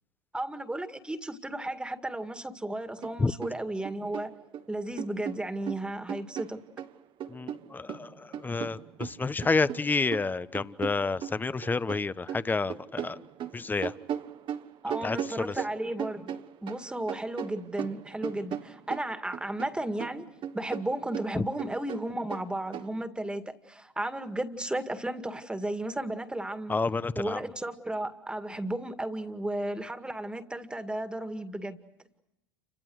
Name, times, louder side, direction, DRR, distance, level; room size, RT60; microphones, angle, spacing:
voice 1, 0.3-4.3 4.7-6.6 14.8-26.8 27.2-31.9, right 1 dB, 5° right, 9 dB, 2.2 m, -34 dB
sound 1, 3.0-3.2 3.4-4.6 5.0-6.9 7.2-12.0 12.3-16.8 17.1-19.7 20.0-22.9, right 9 dB, 40° right, 1.5 m, -38 dB
voice 2, 7.3-13.2 13.5-13.9 15.0-15.5 21.4-21.5 26.7-27.4, left 4 dB, 15° left, 16 dB, 1.0 m, -29 dB
30.0 x 26.0 x 6.4 m, 0.85 s
hypercardioid pair, 85°, 13 cm